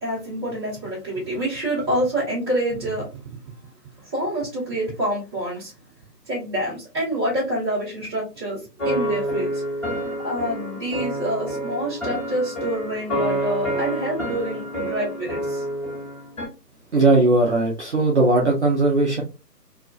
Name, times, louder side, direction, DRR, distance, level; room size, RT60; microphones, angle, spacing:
voice 1, 0.0-3.1 3.4-3.5 4.0-5.7 6.3-9.6 10.2-15.6, right 1 dB, 15° right, 0.9 m, -27 dB
sound 1, 8.8-16.5, right 1 dB, 20° left, 1.2 m, -28 dB
voice 2, 16.9-19.2, right 2 dB, 45° right, 0.5 m, -18 dB
2.4 x 2.3 x 2.2 m
figure-of-eight pair, 150°, 49 cm